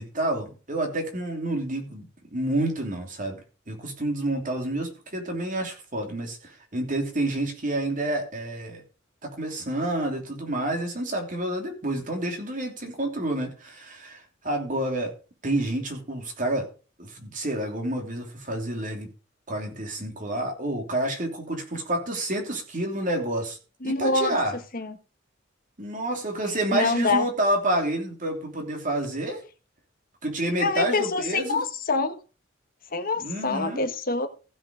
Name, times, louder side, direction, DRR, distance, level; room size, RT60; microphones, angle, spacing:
voice 1, 0.0-3.4 3.7-8.8 9.2-15.1 15.4-16.7 17.0-19.1 19.5-23.6 23.8-24.6 25.8-29.4 30.2-31.6 33.2-33.9, right 1 dB, 40° right, 3.1 m, -29 dB
voice 2, 23.8-24.3 24.7-24.9 26.7-27.3 30.6-32.2 32.9-34.3, left 3 dB, 45° left, 1.4 m, -25 dB
15.0 x 5.8 x 5.0 m
head